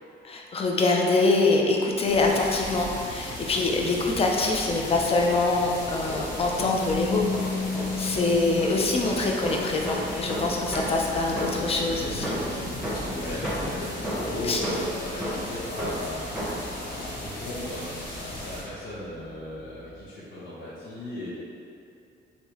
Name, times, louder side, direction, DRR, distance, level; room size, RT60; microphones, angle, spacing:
voice 1, 0.2-7.5 8.0-12.4 14.4-14.6, left 3 dB, 30° left, 0 dB, 0.4 m, -24 dB
sound 1, 2.1-18.6, left 1 dB, 55° left, 1.0 m, -37 dB
sound 2, 6.0-6.9 7.3-11.8 12.2-16.8, equal, 5° right, 0.8 m, -34 dB
sound 3, 6.6-18.4, left 4 dB, 70° right, 0.5 m, -36 dB
voice 2, 8.0-8.3 13.0-21.3, left 1 dB, 75° left, -11 dB, 1.0 m, -36 dB
3.3 x 2.7 x 2.9 m, 2.5 s
cardioid pair, 90°, 20 cm